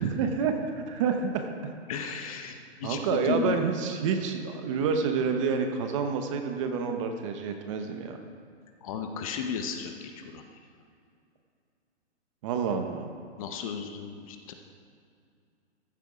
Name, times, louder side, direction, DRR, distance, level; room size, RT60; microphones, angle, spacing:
voice 1, 0.0-1.7 2.8-8.2 12.4-13.1, right 5 dB, 30° right, 5 dB, 0.8 m, -28 dB
voice 2, 1.9-3.6 8.8-10.6 13.4-14.5, left 7 dB, 30° left, 5 dB, 0.7 m, -34 dB
14.5 x 7.3 x 4.9 m, 2.3 s
hypercardioid pair, 155°, 34 cm